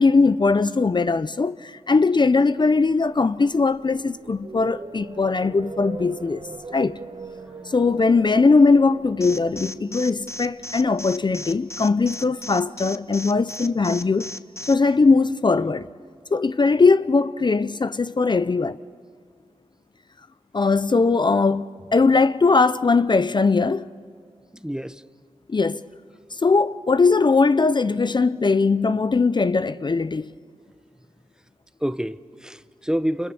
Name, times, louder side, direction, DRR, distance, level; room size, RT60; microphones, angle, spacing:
voice 1, 0.0-6.4 6.7-7.0 7.7-14.3 14.7-15.9 16.3-18.8 20.5-23.9 25.5-25.9 26.3-30.3, left 4 dB, 40° left, 0.6 m, -20 dB
sound 1, 2.6-12.8, right 3 dB, 45° right, 1.9 m, -42 dB
Alarm, 9.2-14.7, left 1 dB, 25° left, 1.1 m, -35 dB
voice 2, 24.5-25.0 31.8-33.3, equal, 5° right, 0.8 m, -28 dB
29.0 x 28.0 x 7.0 m
cardioid pair, 55°, 12 cm